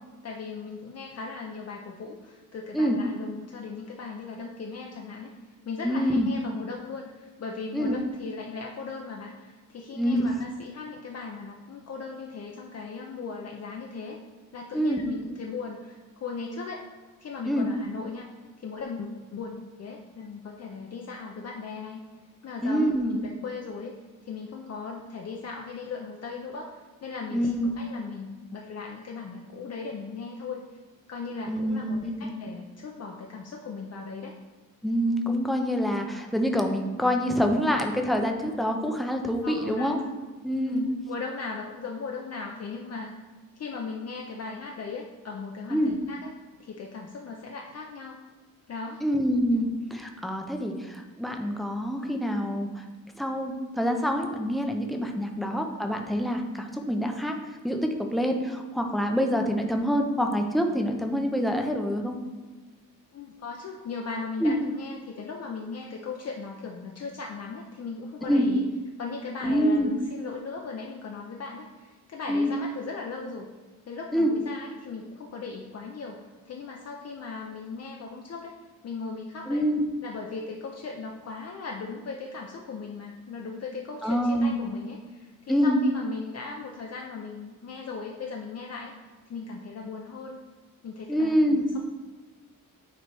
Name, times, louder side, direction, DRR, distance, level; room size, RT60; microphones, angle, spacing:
voice 1, 0.2-5.3 5.7-14.2 14.5-16.9 17.2-18.3 18.6-22.0 22.4-23.9 24.2-30.6 31.1-34.4 39.4-40.0 40.7-43.2 43.6-46.3 46.6-48.3 48.7-49.0 55.2-55.4 63.1-68.7 69.0-73.5 73.9-78.6 78.8-79.6 80.0-88.9 89.3-90.5 90.8-91.8, left 4 dB, 50° left, 0 dB, 0.6 m, -38 dB
voice 2, 5.8-6.3 7.7-7.9 9.9-10.3 14.7-15.0 17.5-17.7 22.6-23.2 27.3-27.7 31.5-32.3 34.8-40.0 40.4-40.8 45.7-45.9 49.0-52.8 53.2-57.4 57.6-62.2 64.4-64.6 68.3-68.5 69.4-69.9 72.3-72.5 74.1-74.3 79.5-79.9 84.0-84.5 85.5-85.8 91.1-91.6, equal, ahead, 2 dB, 0.5 m, -26 dB
9.1 x 3.1 x 4.6 m, 1.3 s
wide cardioid pair, 150°, 34 cm